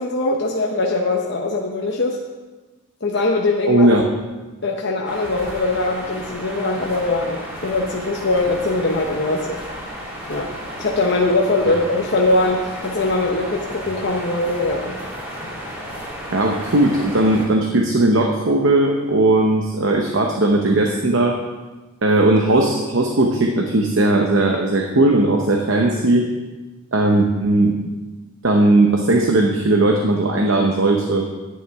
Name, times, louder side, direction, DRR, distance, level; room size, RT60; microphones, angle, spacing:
voice 1, 0.0-2.2 3.0-3.9 4.6-9.6 10.3-15.0, left 2 dB, 50° left, -1 dB, 0.8 m, -21 dB
voice 2, 3.7-4.0 11.6-11.7 16.3-21.4 22.0-26.3 26.9-27.8 28.4-31.2, right 2 dB, 60° right, 2 dB, 0.8 m, -17 dB
sound 1, 5.0-17.4, equal, 10° right, 3.0 m, -33 dB
11.0 x 9.6 x 3.5 m, 1.2 s
head